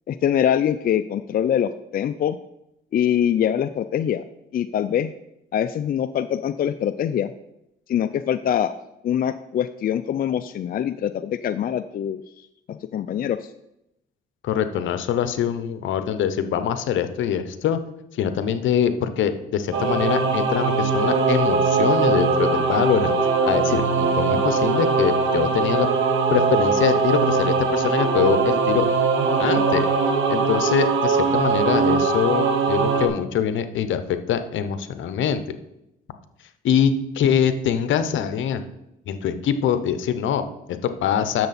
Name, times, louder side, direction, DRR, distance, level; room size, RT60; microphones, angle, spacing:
voice 1, 0.1-2.4 2.9-4.2 4.5-5.1 5.5-7.3 7.9-8.7 9.0-12.2 12.7-13.5, left 9 dB, 45° left, 10 dB, 0.4 m, -23 dB
voice 2, 14.4-17.8 18.1-25.9 26.3-28.9 29.4-29.9 30.3-35.4 36.6-38.6 39.1-41.5, left 8 dB, 75° left, 10 dB, 0.8 m, -23 dB
Singing / Musical instrument, 19.7-33.1, right 4 dB, 80° right, 1.3 m, -21 dB
10.5 x 6.8 x 4.2 m, 0.85 s
cardioid pair, 90°, 20 cm